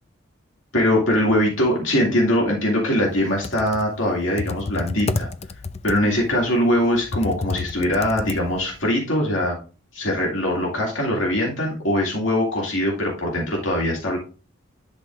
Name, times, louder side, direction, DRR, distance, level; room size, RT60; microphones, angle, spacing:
voice 1, 0.7-5.3 5.8-9.6 9.9-14.2, left 1 dB, 80° left, -2 dB, 2.3 m, -22 dB
Computer keyboard, 3.2-8.8, left 3 dB, 35° left, 0.5 m, -30 dB
11.0 x 6.0 x 2.5 m, 0.35 s
head